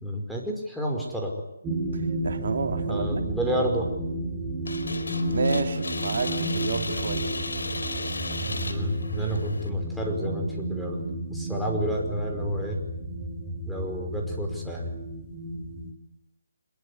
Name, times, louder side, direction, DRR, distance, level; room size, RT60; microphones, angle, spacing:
voice 1, 0.0-1.3 2.9-3.9 8.4-11.0 11.3-12.8 13.7-14.9, equal, ahead, -1 dB, 5.2 m, -30 dB
sound 1, 1.6-15.9, right 1 dB, 15° right, 4.4 m, -32 dB
voice 2, 1.9-3.2 3.5-3.6 5.3-7.3, right 5 dB, 60° right, 6 dB, 2.7 m, -30 dB
sound 2, 4.7-9.7, left 2 dB, 90° left, 4.7 m, -34 dB
26.5 x 22.0 x 9.9 m, 0.81 s
hypercardioid pair, 160°, 0 cm